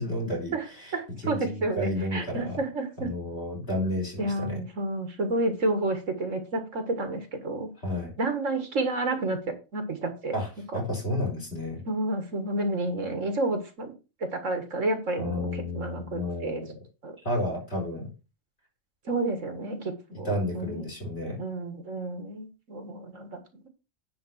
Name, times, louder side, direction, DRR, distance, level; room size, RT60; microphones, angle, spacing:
voice 1, 0.0-0.9 1.2-2.6 3.0-4.6 7.8-8.1 10.3-11.8 15.2-16.7 17.2-18.1 20.1-21.4, left 1 dB, 50° left, 4.8 m, -31 dB
voice 2, 0.9-3.1 4.2-7.7 8.2-9.4 9.7-10.3 11.9-13.9 14.2-16.6 17.0-17.1 19.1-20.9 21.4-23.4, right 2 dB, 65° right, 2.0 m, -30 dB
9.8 x 3.7 x 7.2 m
omnidirectional pair, 1.4 m